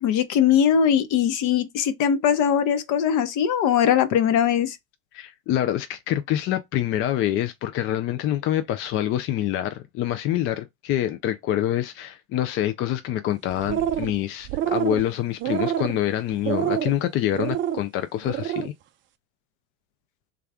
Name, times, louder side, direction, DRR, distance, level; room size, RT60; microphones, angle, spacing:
voice 1, 0.0-4.8, left 8 dB, 50° left, 0.8 m, -21 dB
voice 2, 5.1-18.7, left 12 dB, 35° left, 0.4 m, -26 dB
sound 1, 13.5-14.2 14.4-15.0 15.4-16.0 16.4-16.9 17.3-17.8 18.2-18.7, right 11 dB, 30° right, 0.4 m, -26 dB
3.5 x 2.3 x 3.5 m
hypercardioid pair, 100°, 41 cm